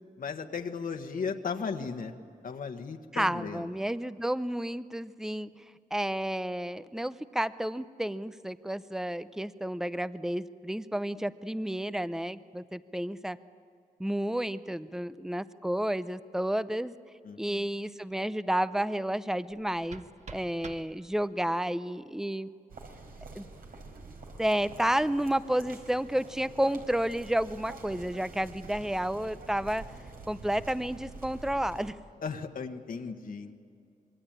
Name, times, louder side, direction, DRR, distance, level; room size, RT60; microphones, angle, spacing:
voice 1, 0.2-2.1 2.4-3.7 17.2-17.6 32.2-33.6, left 5 dB, 65° left, 5 dB, 1.5 m, -36 dB
voice 2, 3.1-5.5 5.9-13.4 14.0-16.9 17.4-22.5 23.3-23.4 24.4-29.8 30.3-32.0, right 1 dB, 5° right, 14 dB, 0.6 m, -31 dB
sound 1, 19.5-21.5, right 4 dB, 50° right, 1.3 m, -49 dB
sound 2, 22.7-31.9, right 3 dB, 80° right, 4.8 m, -47 dB
26.5 x 22.5 x 9.0 m, 2.3 s
wide cardioid pair, 135°, 15 cm